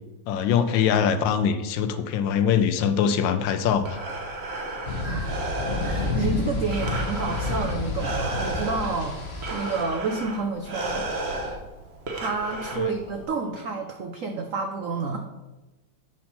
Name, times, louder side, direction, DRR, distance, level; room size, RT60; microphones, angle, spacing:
voice 1, 0.3-4.0 12.7-12.9, left 7 dB, 75° left, 9 dB, 1.2 m, -23 dB
Breathing, 3.6-13.2, right 2 dB, 45° right, 0.9 m, -33 dB
sound 1, 4.9-9.8, left 3 dB, 40° left, 1.1 m, -30 dB
voice 2, 5.0-5.4 5.8-9.2 9.5-11.1 12.1-15.2, right 4 dB, 85° right, 4 dB, 0.7 m, -29 dB
7.5 x 4.3 x 5.6 m, 1.1 s
omnidirectional pair, 2.1 m